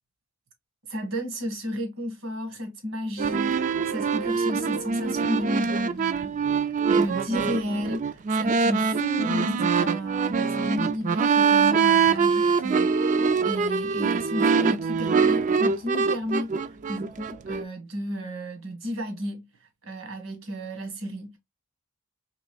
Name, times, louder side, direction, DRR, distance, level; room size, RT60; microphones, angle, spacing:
voice 1, 0.9-6.4 6.9-21.4, equal, 75° right, 1.5 m, -33 dB
sound 1, 3.2-17.6, right 5 dB, 35° right, 0.3 m, -24 dB
4.1 x 3.3 x 2.3 m
head